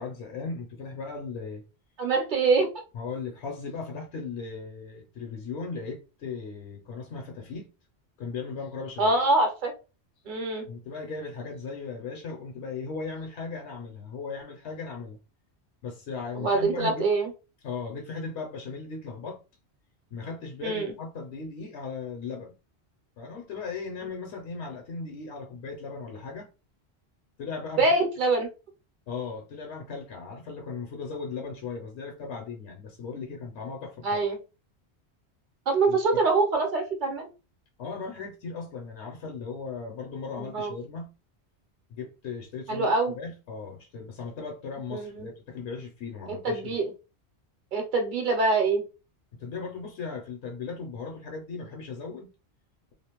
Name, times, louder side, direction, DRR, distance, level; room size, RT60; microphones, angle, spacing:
voice 1, 0.0-1.6 2.9-7.7 8.2-9.1 10.7-15.2 15.8-17.1 17.6-19.4 20.1-22.5 23.2-26.5 27.4-27.9 29.1-34.2 35.9-36.2 37.8-41.1 41.9-46.8 49.3-52.3, left 4 dB, 80° left, 0.9 m, -37 dB
voice 2, 2.0-2.7 9.0-9.7 10.3-10.6 16.3-17.3 20.6-20.9 27.8-28.5 34.0-34.4 35.7-37.3 40.4-40.7 42.7-43.1 44.9-45.3 46.4-46.9 47.7-48.8, right 3 dB, 55° right, 0.7 m, -24 dB
2.4 x 2.0 x 2.9 m
omnidirectional pair, 1.1 m